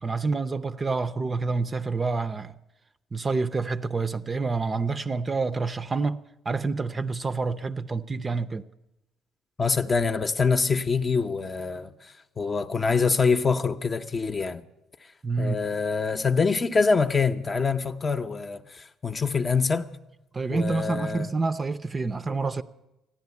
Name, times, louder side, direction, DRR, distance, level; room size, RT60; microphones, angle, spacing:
voice 1, 0.0-2.5 3.1-6.2 6.5-8.6 15.2-15.6 20.3-22.6, right 3 dB, 30° right, 0.6 m, -28 dB
voice 2, 9.6-14.6 15.4-19.9 20.5-21.3, left 5 dB, 35° left, 0.7 m, -25 dB
14.5 x 10.5 x 8.3 m
supercardioid pair, 75°, 0 cm